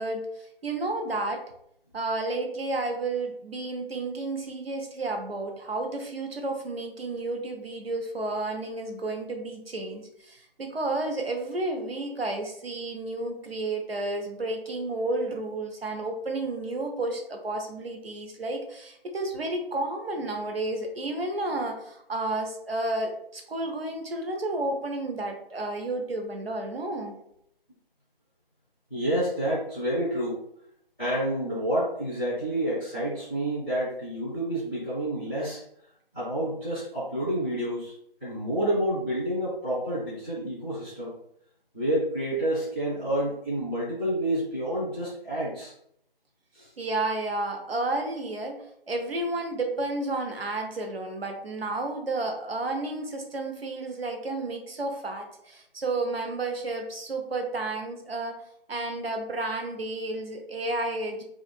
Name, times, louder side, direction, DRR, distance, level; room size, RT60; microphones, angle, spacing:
voice 1, 0.0-1.4 1.9-27.2 46.8-58.4 58.7-61.2, right 2 dB, 85° right, 3 dB, 0.7 m, -31 dB
voice 2, 28.9-30.4 31.0-35.6 36.1-37.9 38.2-41.1 41.7-45.7 46.5-46.7, right 1 dB, 5° right, -16 dB, 0.5 m, -29 dB
2.7 x 2.4 x 2.2 m, 0.71 s
figure-of-eight pair, 150°, 29 cm